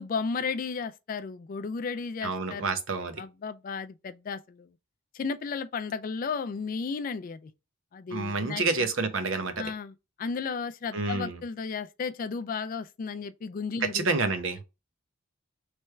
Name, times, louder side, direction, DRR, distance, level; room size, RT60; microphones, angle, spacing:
voice 1, 0.0-2.7 3.2-4.7 5.1-7.5 7.9-8.9 9.6-14.1, left 5 dB, 40° left, 0.3 m, -34 dB
voice 2, 2.2-3.2 8.1-9.7 10.9-11.4 13.8-14.6, right 3 dB, 70° right, 0.7 m, -29 dB
3.4 x 3.1 x 4.4 m
head